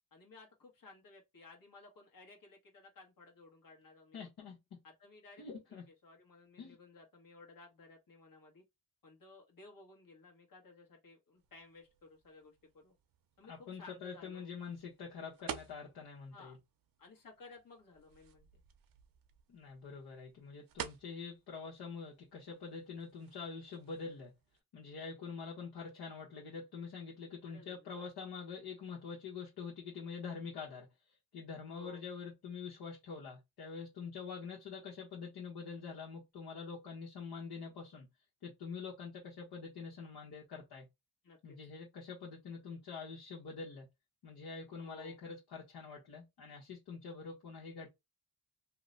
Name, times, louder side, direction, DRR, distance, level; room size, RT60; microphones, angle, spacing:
voice 1, 0.1-4.3 4.8-5.4 6.0-8.6 9.0-12.9 13.4-14.5 16.3-16.6 17.0-18.5 27.4-28.1 31.7-32.0 41.2-41.7 44.7-45.2, left 3 dB, 60° left, 1.3 m, -57 dB
voice 2, 4.1-4.8 5.4-5.8 6.6-6.8 13.4-16.6 19.5-24.3 24.7-38.1 38.4-40.9 41.4-43.9 44.2-47.9, left 5 dB, 80° left, 1.2 m, -46 dB
sound 1, 11.4-24.6, right 9 dB, 60° right, 0.6 m, -52 dB
2.9 x 2.1 x 3.8 m
cardioid pair, 110°, 38 cm